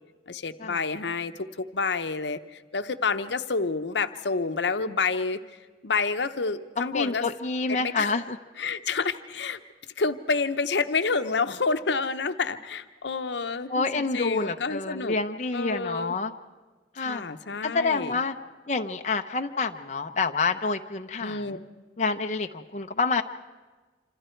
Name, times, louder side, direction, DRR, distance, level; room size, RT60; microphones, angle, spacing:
voice 1, 0.3-5.4 5.8-7.2 7.7-8.2 8.6-9.6 10.0-15.2 15.5-16.2 17.0-18.2 21.2-21.6, left 4 dB, 80° left, 9 dB, 0.8 m, -29 dB
voice 2, 6.8-8.4 13.7-16.3 16.9-17.2 17.6-18.3 18.7-21.6 22.0-23.2, left 4 dB, 40° left, 5 dB, 0.7 m, -28 dB
27.0 x 26.5 x 4.5 m, 1.3 s
head